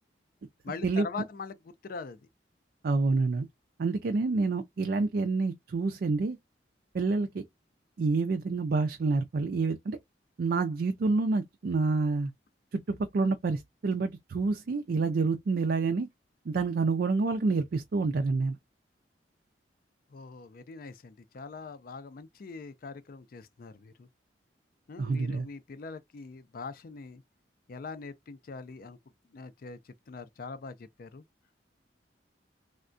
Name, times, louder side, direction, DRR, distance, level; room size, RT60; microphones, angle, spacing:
voice 1, 0.6-2.2 20.1-24.1 24.9-27.2 27.7-29.0 29.3-31.2, left 4 dB, 50° left, 0.4 m, -42 dB
voice 2, 2.8-3.5 3.8-6.4 6.9-7.4 8.0-10.0 10.4-12.3 12.7-16.1 16.5-18.6 25.0-25.5, right 3 dB, 55° right, 0.4 m, -28 dB
3.5 x 2.1 x 2.5 m
head